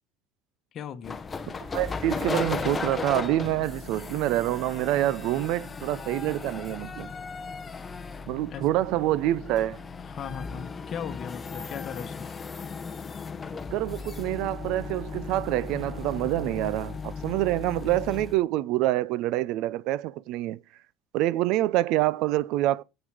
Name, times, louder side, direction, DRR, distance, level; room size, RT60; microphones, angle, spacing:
voice 1, 0.7-1.2 8.5-8.6 10.0-12.3, left 8 dB, 35° left, 1.1 m, -37 dB
sound 1, 1.0-18.4, left 5 dB, 20° left, 0.7 m, -36 dB
voice 2, 1.6-7.1 8.3-9.8 13.7-20.6 21.1-22.8, right 15 dB, 60° right, 0.5 m, -26 dB
8.8 x 8.1 x 4.9 m
cardioid pair, 135°, 0 cm